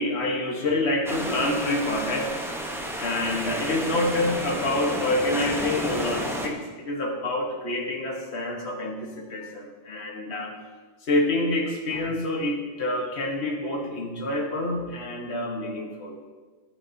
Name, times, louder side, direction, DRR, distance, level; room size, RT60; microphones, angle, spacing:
voice 1, 0.0-2.4 3.0-10.5 11.1-16.2, left 1 dB, 60° left, 2 dB, 1.3 m, -27 dB
sound 1, 1.1-6.5, equal, 5° right, 0.5 m, -31 dB
9.6 x 8.5 x 2.6 m, 1.4 s
omnidirectional pair, 1.3 m